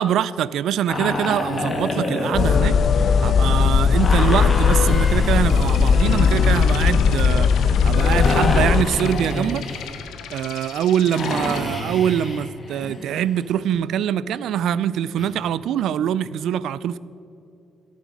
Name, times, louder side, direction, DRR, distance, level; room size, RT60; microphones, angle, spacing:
voice 1, 0.0-9.6 10.3-17.0, right 10 dB, 80° right, 18 dB, 0.3 m, -24 dB
sound 1, 0.9-3.4 3.9-10.1 11.1-13.8 15.2-15.3, left 2 dB, 30° left, 1.9 m, -29 dB
sound 2, 2.3-8.8, left 6 dB, 55° left, 0.5 m, -17 dB
sound 3, 5.5-11.6, left 9 dB, 85° left, 0.7 m, -37 dB
12.0 x 8.5 x 5.2 m, 2.6 s
cardioid pair, 90°, 0 cm